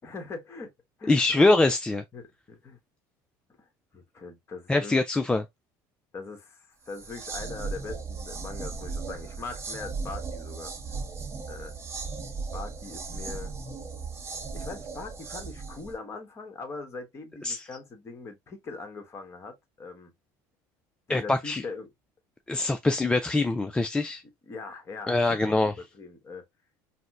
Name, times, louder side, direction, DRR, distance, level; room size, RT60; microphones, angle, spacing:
voice 1, 0.0-0.7 1.0-1.2 2.1-2.8 3.6-3.7 3.9-5.0 6.1-10.7 11.5-11.8 12.5-13.5 14.5-20.1 21.1-21.9 24.5-26.4, left 4 dB, 30° left, 1.2 m, -41 dB
voice 2, 1.1-2.0 4.7-5.4 17.4-17.6 21.1-21.6 22.5-24.2 25.1-25.7, left 2 dB, 10° left, 0.3 m, -23 dB
sound 1, 6.9-16.0, right 4 dB, 30° right, 0.8 m, -37 dB
4.1 x 2.1 x 2.5 m
supercardioid pair, 105°, 9 cm